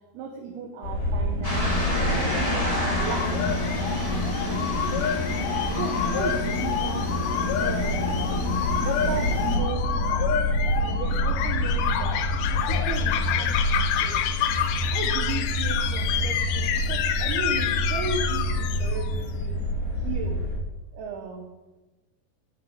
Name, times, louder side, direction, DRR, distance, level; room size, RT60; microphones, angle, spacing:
voice 1, 0.1-1.8 2.1-3.4 4.1-5.1 5.7-7.1 7.6-8.3 8.8-10.3 10.8-14.2 14.9-19.6 19.9-20.4 20.9-21.5, right 5 dB, 80° right, 2 dB, 2.9 m, -36 dB
sound 1, 0.8-20.6, left 1 dB, 65° left, 4.6 m, -28 dB
sound 2, 1.4-9.6, left 1 dB, 15° left, 1.3 m, -29 dB
sound 3, 2.7-19.2, left 9 dB, 80° left, 1.9 m, -29 dB
10.5 x 6.5 x 7.1 m, 1.1 s
omnidirectional pair, 4.5 m